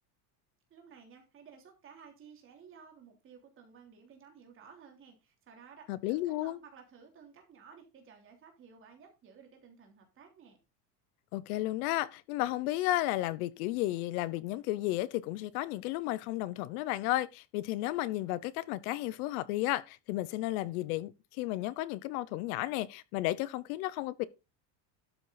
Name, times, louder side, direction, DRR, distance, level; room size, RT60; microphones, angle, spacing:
voice 1, 0.7-10.6, right 6 dB, 25° right, 3.2 m, -55 dB
voice 2, 5.9-6.6 11.3-24.3, left 16 dB, 60° left, 1.0 m, -33 dB
12.5 x 6.9 x 4.0 m
cardioid pair, 175°, 48 cm